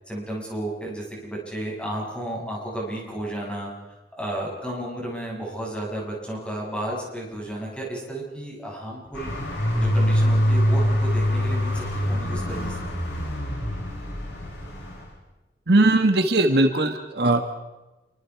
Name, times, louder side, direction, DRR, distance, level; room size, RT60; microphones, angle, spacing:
voice 1, 0.1-3.7 4.2-9.3 9.7-12.8, right 1 dB, 5° left, -3 dB, 7.4 m, -33 dB
sound 1, 9.1-15.1, equal, 80° left, 8.0 m, -24 dB
voice 2, 15.7-17.5, right 2 dB, 65° right, 5 dB, 1.7 m, -19 dB
28.0 x 24.5 x 4.8 m, 1.1 s
head